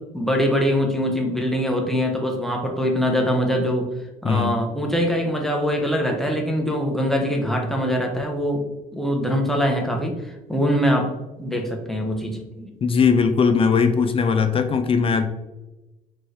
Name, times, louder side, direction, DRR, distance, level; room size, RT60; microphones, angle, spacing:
voice 1, 0.1-3.9 4.2-8.7 8.9-11.1 11.4-12.7, equal, ahead, 1 dB, 0.8 m, -23 dB
voice 2, 12.8-15.3, left 5 dB, 35° left, 8 dB, 0.4 m, -19 dB
4.4 x 3.1 x 3.2 m, 1.0 s
cardioid pair, 110°, 17 cm